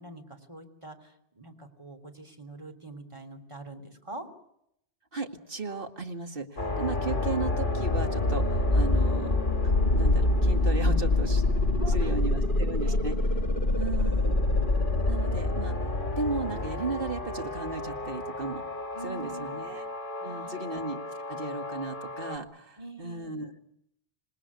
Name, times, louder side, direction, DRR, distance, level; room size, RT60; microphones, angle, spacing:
voice 1, 0.0-4.3 11.7-12.1 12.8-13.0 18.9-19.8 20.2-20.7 22.8-23.3, right 2 dB, 25° right, 5 dB, 3.1 m, -44 dB
voice 2, 5.1-9.4 9.6-11.4 11.9-13.2 13.8-14.4 15.1-15.8 16.2-18.6 19.0-19.9 20.2-21.0 21.3-23.5, right 3 dB, 55° right, 5 dB, 2.2 m, -35 dB
sound 1, 6.6-22.4, left 2 dB, 50° left, 2.6 m, -27 dB
27.5 x 20.0 x 8.4 m, 0.78 s
omnidirectional pair, 1.1 m